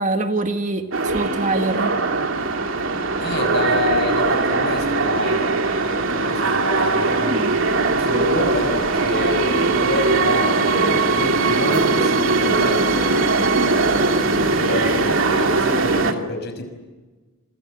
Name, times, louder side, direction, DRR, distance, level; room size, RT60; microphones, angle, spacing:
voice 1, 0.0-1.9 7.2-7.5, right 2 dB, 35° right, 1.7 m, -24 dB
sound 1, 0.9-16.1, right 3 dB, 65° right, 2.5 m, -20 dB
voice 2, 3.2-5.4 5.8-7.4 8.0-13.2 13.8-16.7, left 2 dB, 50° left, 6.0 m, -28 dB
28.0 x 25.0 x 7.8 m
head